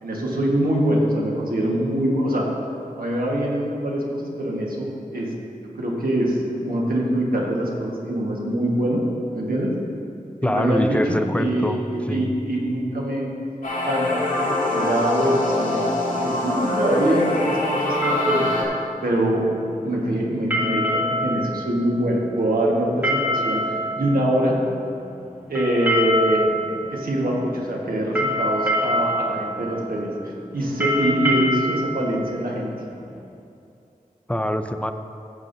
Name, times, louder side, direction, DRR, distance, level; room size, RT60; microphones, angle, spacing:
voice 1, 0.0-2.5 3.0-5.3 5.8-9.0 9.3-9.7 10.4-13.3 13.8-15.8 16.2-18.4 19.0-19.4 19.8-24.6 25.5-26.5 26.9-30.1 30.5-32.7, right 1 dB, 85° right, -3 dB, 1.5 m, -23 dB
voice 2, 10.4-11.8 12.1-12.3 34.3-34.9, left 1 dB, 10° left, 8 dB, 0.4 m, -24 dB
sound 1, 13.6-18.6, left 2 dB, 65° left, 2.1 m, -24 dB
sound 2, 16.1-33.2, equal, 10° right, 1.7 m, -27 dB
14.5 x 7.1 x 2.7 m, 2.6 s
wide cardioid pair, 80°, 15 cm